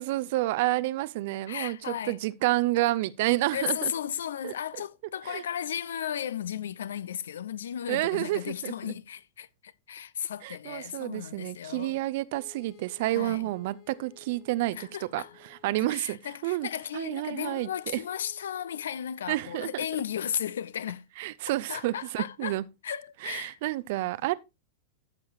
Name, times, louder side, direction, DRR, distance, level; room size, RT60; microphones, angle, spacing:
voice 1, 0.0-3.9 4.4-4.5 5.3-5.4 7.9-8.9 10.4-16.7 16.9-18.0 19.3-19.7 21.2-22.6 23.2-24.3, right 17 dB, 50° right, 0.5 m, -29 dB
voice 2, 1.5-2.2 3.5-12.0 13.1-13.5 14.7-15.3 15.8-21.0 21.7-22.6 22.8-23.6, left 9 dB, 65° left, 0.5 m, -35 dB
sound 1, 12.3-15.9 17.5-18.8, left 12 dB, 40° left, 1.4 m, -56 dB
13.0 x 7.2 x 2.5 m
figure-of-eight pair, 90°, 0 cm